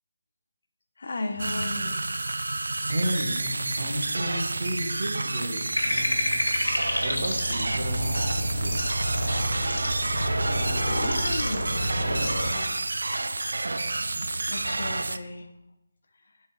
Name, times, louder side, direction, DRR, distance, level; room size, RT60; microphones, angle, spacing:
voice 1, 1.0-2.1 11.2-12.9 14.5-15.5, left 2 dB, 50° left, 6 dB, 0.6 m, -35 dB
sound 1, 1.4-15.2, right 2 dB, 65° right, 0.3 m, -30 dB
voice 2, 2.8-6.3 7.0-8.8, right 1 dB, 45° right, 1 dB, 1.2 m, -33 dB
sound 2, 5.7-12.5, equal, 75° left, 1.4 m, -28 dB
7.0 x 4.3 x 3.8 m, 0.87 s
figure-of-eight pair, 155°, 0 cm